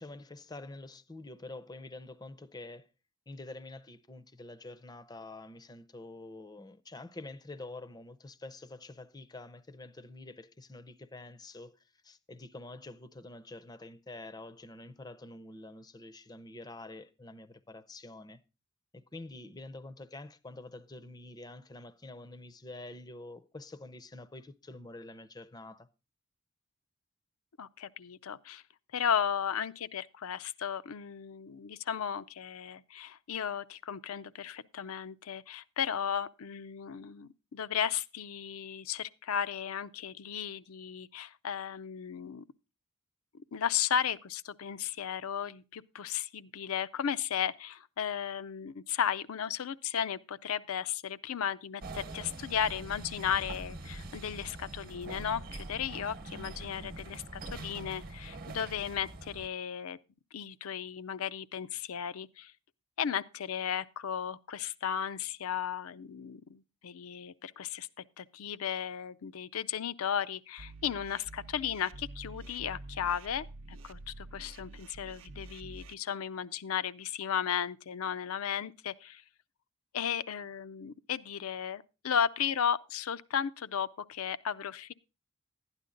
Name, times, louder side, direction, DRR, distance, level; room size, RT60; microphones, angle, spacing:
voice 1, 0.0-2.9 3.3-18.4 18.9-25.9, left 2 dB, 20° left, 0.5 m, -47 dB
voice 2, 27.6-28.6 28.9-42.4 43.3-60.0 60.3-62.5 63.0-67.9 68.2-79.2 79.9-84.9, left 8 dB, 80° left, 0.5 m, -35 dB
sound 1, 51.8-59.5, right 2 dB, 45° right, 1.0 m, -44 dB
sound 2, 70.6-75.9, right 2 dB, 65° right, 0.6 m, -47 dB
12.0 x 9.8 x 3.8 m
head